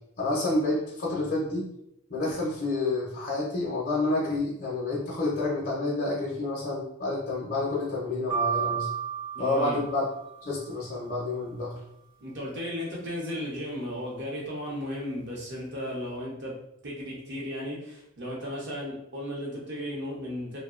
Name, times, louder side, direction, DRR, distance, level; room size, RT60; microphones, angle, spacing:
voice 1, 0.2-1.7 2.1-8.9 9.4-10.0 10.4-11.8, left 2 dB, 40° left, -5 dB, 0.5 m, -29 dB
sound 1, 8.3-10.4, right 7 dB, 20° right, 0.4 m, -31 dB
voice 2, 9.3-9.8 12.2-16.6 16.8-20.6, equal, 50° right, -3 dB, 0.7 m, -35 dB
2.6 x 2.0 x 2.4 m, 0.78 s
head